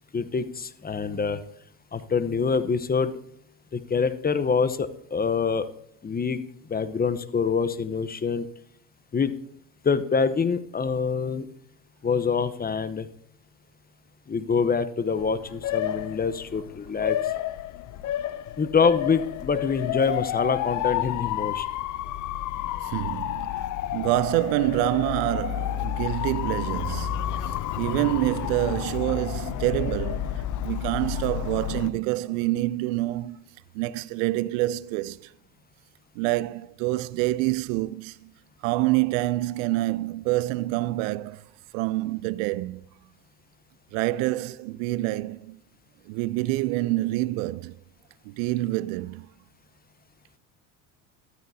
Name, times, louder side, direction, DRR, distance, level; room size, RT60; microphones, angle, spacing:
voice 1, 0.1-1.4 1.9-3.1 3.7-5.7 6.0-6.4 6.7-8.5 9.1-9.3 9.8-11.5 12.0-13.1 14.3-17.2 18.6-21.7, left 5 dB, 25° left, 0.9 m, -25 dB
Motor vehicle (road) / Siren, 15.1-31.9, left 12 dB, 50° left, 0.7 m, -30 dB
voice 2, 22.8-33.4 33.7-35.3 36.2-38.3 38.6-41.4 41.7-42.8 43.9-45.6 46.1-47.8 48.3-49.3, right 18 dB, 75° right, 0.5 m, -27 dB
14.0 x 12.5 x 2.8 m
hypercardioid pair, 75°, 39 cm